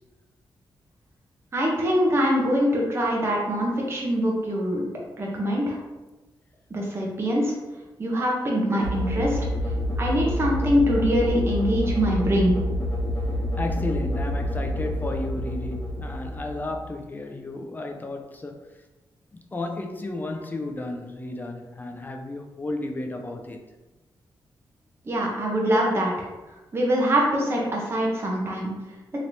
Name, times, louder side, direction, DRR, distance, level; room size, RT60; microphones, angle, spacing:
voice 1, 1.5-4.9 5.2-5.8 6.7-7.5 8.0-9.4 10.0-12.6 25.0-26.3 26.7-28.7, equal, 30° right, 0.7 m, -23 dB
sound 1, 8.8-17.0, left 1 dB, 45° left, 1.0 m, -28 dB
voice 2, 13.6-18.7 19.3-23.6, left 2 dB, 20° left, 0.4 m, -33 dB
3.2 x 2.9 x 2.6 m
wide cardioid pair, 120°, 9 cm